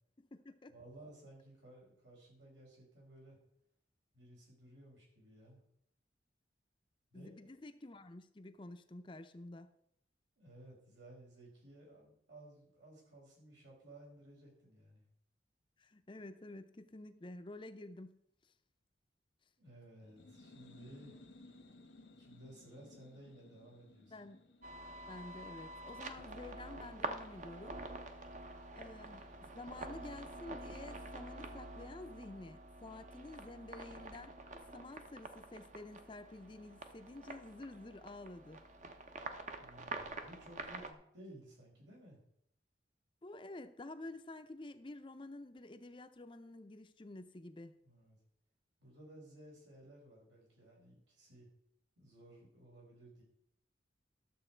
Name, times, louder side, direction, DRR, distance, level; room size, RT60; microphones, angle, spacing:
voice 1, 0.2-0.7 7.1-9.7 15.8-18.2 24.1-24.4 25.1-27.8 28.8-29.3 29.5-34.3 34.7-38.6 43.2-47.8, left 2 dB, 25° left, 9 dB, 0.5 m, -50 dB
voice 2, 0.7-3.4 4.1-5.6 7.1-7.5 10.4-15.0 19.6-21.1 22.2-24.3 39.6-42.2 47.8-48.2 48.8-51.5 52.0-53.2, right 1 dB, 85° right, -3 dB, 4.8 m, -57 dB
sound 1, 20.0-27.5, left 2 dB, 85° left, 1.2 m, -60 dB
sound 2, 24.6-40.9, right 2 dB, 40° right, 0.8 m, -47 dB
12.0 x 6.9 x 4.5 m, 0.73 s
head